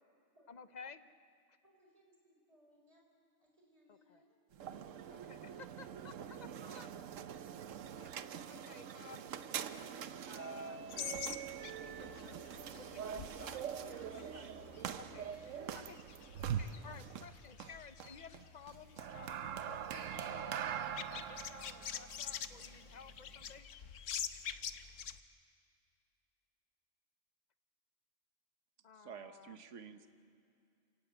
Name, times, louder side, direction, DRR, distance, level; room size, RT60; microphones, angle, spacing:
voice 1, 0.5-1.1 3.9-4.2 5.1-7.2 8.0-8.1 8.5-9.3 9.7-10.8 11.5-14.5 15.1-15.2 15.7-16.0 16.4-23.7 28.8-29.5, left 5 dB, 40° left, 12 dB, 0.8 m, -55 dB
voice 2, 1.6-3.0 3.4-4.4, equal, 30° right, 0 dB, 4.9 m, -68 dB
sound 1, 4.5-23.6, right 8 dB, 90° right, 1.2 m, -44 dB
sound 2, 10.9-25.2, left 8 dB, 80° left, 1.2 m, -47 dB
voice 3, 28.9-30.1, right 7 dB, 75° right, 9 dB, 1.4 m, -50 dB
28.0 x 18.0 x 8.0 m, 2.4 s
omnidirectional pair, 1.3 m